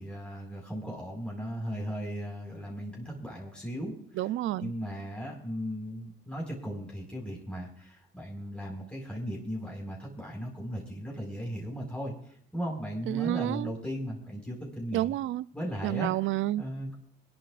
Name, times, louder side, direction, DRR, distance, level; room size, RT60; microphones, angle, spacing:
voice 1, 0.0-4.3 4.6-12.1 12.5-15.1 15.5-16.1 16.6-16.9, equal, 5° left, 4.9 m, -37 dB
voice 2, 4.2-4.7 13.1-13.7 14.9-15.5 15.8-16.6, right 14 dB, 80° right, 0.5 m, -29 dB
24.0 x 11.5 x 2.5 m
cardioid pair, 90°, 20 cm